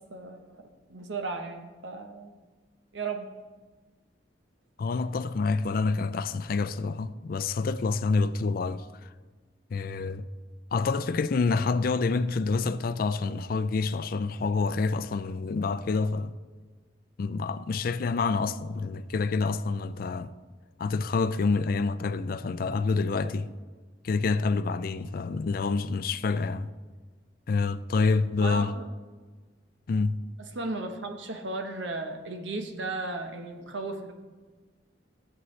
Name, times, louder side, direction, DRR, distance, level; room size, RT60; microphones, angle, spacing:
voice 1, 0.1-2.3 2.9-3.3 28.4-28.8 30.4-34.1, right 3 dB, 90° right, 1.0 m, -35 dB
voice 2, 4.8-9.1 9.7-10.2 10.7-16.3 17.2-20.3 20.8-23.5 24.0-26.7 27.5-28.7 29.9-30.2, left 4 dB, 50° left, 0.4 m, -27 dB
14.0 x 7.6 x 3.2 m
head